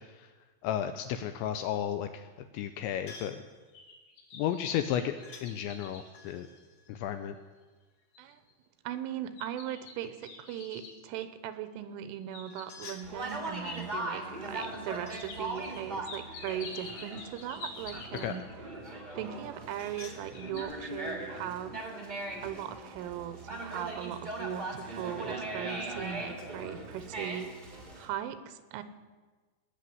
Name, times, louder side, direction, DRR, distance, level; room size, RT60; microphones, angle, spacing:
voice 1, 0.6-2.1 2.5-3.4 4.3-6.5 6.9-7.4 18.2-18.4, left 10 dB, 85° left, 9 dB, 2.6 m, -33 dB
Missile Head, 3.1-3.5 5.2-5.5 6.1-7.9 12.4-13.5 14.4-15.3 15.5-17.4 19.3-20.2, left 5 dB, 50° left, 2.7 m, -52 dB
sound 1, 3.5-7.0 7.6-7.7 8.1-8.5 9.4-11.0 12.0-13.0 13.7-13.8 14.6-14.7 15.2-18.6 19.6-20.1 20.3-20.6, left 4 dB, 65° left, 4.7 m, -48 dB
voice 2, 8.8-18.5 19.2-21.8 22.4-27.5 28.0-28.8, right 10 dB, 90° right, 11 dB, 3.4 m, -39 dB
Conversation, 13.0-28.0, right 2 dB, 65° right, 0.4 m, -40 dB
19.5 x 6.8 x 9.3 m, 1.3 s
omnidirectional pair, 5.7 m